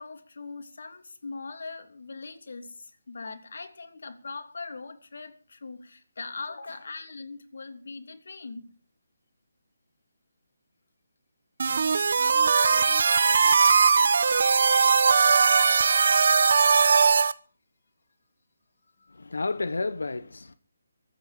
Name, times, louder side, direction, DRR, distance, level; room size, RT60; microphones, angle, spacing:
voice 1, 0.0-8.7 19.0-19.2, left 4 dB, 70° left, 3.1 m, -41 dB
sound 1, 11.6-17.3, right 5 dB, 55° right, 0.9 m, -20 dB
voice 2, 19.1-20.5, left 3 dB, 90° left, 1.3 m, -31 dB
24.0 x 9.3 x 5.2 m
hypercardioid pair, 165°, 0 cm